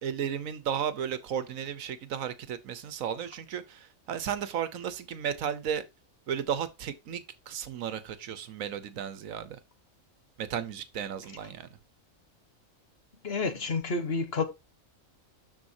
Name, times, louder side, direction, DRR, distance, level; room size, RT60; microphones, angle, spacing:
voice 1, 0.0-5.8 6.3-9.6 10.4-11.7, right 8 dB, 80° right, 1.3 m, -34 dB
voice 2, 13.2-14.4, left 4 dB, 50° left, 1.2 m, -29 dB
12.5 x 4.6 x 2.7 m
omnidirectional pair, 1.4 m